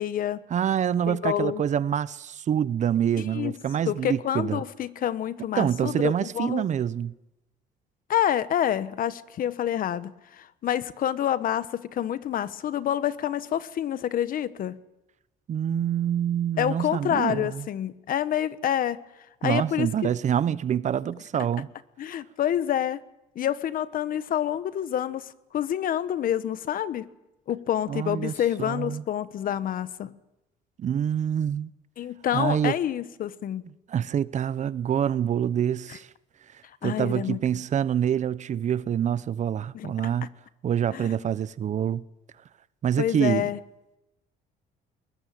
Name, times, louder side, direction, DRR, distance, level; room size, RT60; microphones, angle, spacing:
voice 1, 0.0-0.4 1.1-1.6 3.3-3.6 3.9-6.7 8.1-14.8 16.6-19.0 19.4-19.9 22.0-23.0 23.3-27.1 27.5-30.2 32.0-33.6 35.9-36.0 36.6-37.4 39.7-39.9 40.9-41.2 43.0-43.6, left 10 dB, 55° left, 1.2 m, -28 dB
voice 2, 0.5-4.6 5.6-7.1 15.5-17.6 19.4-21.7 27.9-28.3 28.6-29.0 30.8-31.7 32.3-32.8 33.9-36.1 36.8-40.3 40.6-42.0 42.8-43.5, right 9 dB, 45° right, 0.8 m, -26 dB
21.5 x 20.5 x 9.2 m
cardioid pair, 110°, 17 cm